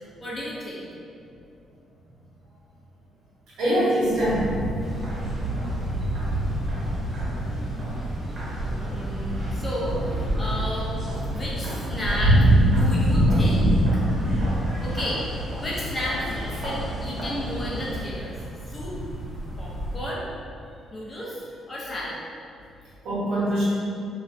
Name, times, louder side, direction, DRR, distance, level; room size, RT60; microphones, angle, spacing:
voice 1, 0.2-0.8 8.9-13.8 14.8-15.2 15.6-18.3 18.7-19.0 19.6-20.2 20.9-22.2, left 1 dB, 30° left, -6 dB, 0.6 m, -33 dB
voice 2, 3.6-4.6 8.9-9.0 23.0-23.6, right 1 dB, 80° right, -8 dB, 0.8 m, -23 dB
sound 1, 4.1-20.0, right 1 dB, 70° left, 1.0 m, -26 dB
sound 2, 4.8-18.0, equal, 50° right, 0.7 m, -35 dB
2.3 x 2.1 x 2.5 m, 2.5 s
cardioid pair, 90°, 0 cm